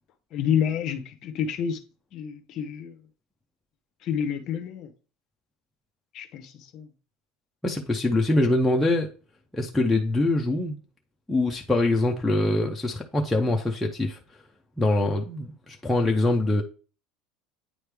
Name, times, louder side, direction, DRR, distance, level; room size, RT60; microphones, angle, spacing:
voice 1, 0.3-1.8 2.1-3.0 4.0-4.9 6.1-6.9, left 8 dB, 35° left, 0.7 m, -29 dB
voice 2, 7.6-9.1 9.5-10.8 11.3-14.2 14.8-16.6, left 2 dB, 5° left, 0.4 m, -24 dB
8.8 x 3.1 x 3.4 m
cardioid pair, 175°, 0 cm